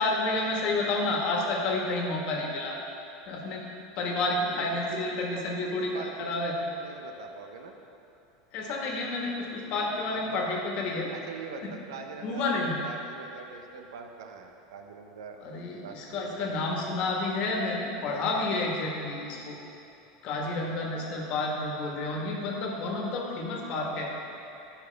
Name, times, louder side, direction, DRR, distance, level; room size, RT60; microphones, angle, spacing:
voice 1, 0.0-2.8 3.3-3.6 4.0-6.5 8.5-11.1 12.2-12.8 15.4-19.6 20.2-24.1, left 2 dB, 55° left, -1 dB, 1.5 m, -30 dB
voice 2, 4.5-6.1 6.4-7.7 10.1-10.4 11.1-15.4 15.8-16.9, right 5 dB, 85° right, 4 dB, 0.8 m, -43 dB
11.5 x 5.7 x 3.5 m, 2.9 s
supercardioid pair, 120°, 2 cm